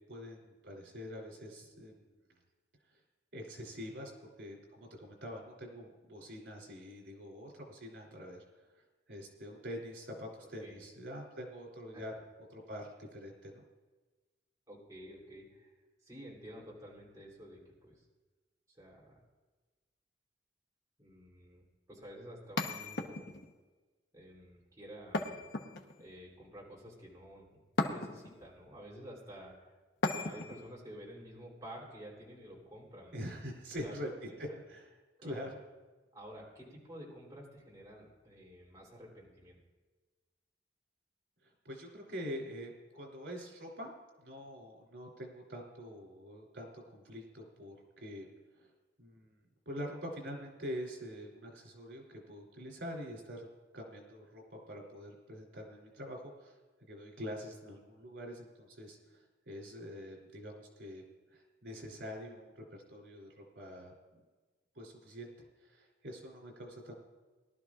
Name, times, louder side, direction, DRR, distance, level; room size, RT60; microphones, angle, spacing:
voice 1, 0.1-1.9 3.3-4.1 4.4-8.4 9.1-12.1 12.5-13.6 33.1-34.9 35.2-35.6 41.6-43.9 44.2-48.3 48.5-48.7 49.0-53.5 53.7-61.0 61.3-64.2 64.7-65.3 65.6-66.9, equal, 85° right, -1 dB, 3.1 m, -45 dB
voice 2, 10.4-10.9 11.9-12.2 14.7-15.7 16.0-17.9 18.7-19.2 21.0-23.4 24.1-25.4 26.0-29.8 30.1-33.3 33.7-34.0 34.3-34.4 35.2-35.5 36.1-39.6, equal, 20° right, -5 dB, 3.2 m, -51 dB
sound 1, 22.6-23.5 25.1-26.1 27.8-28.4 30.0-30.7, left 2 dB, 65° left, 1.1 m, -36 dB
21.5 x 12.0 x 2.4 m, 1.3 s
head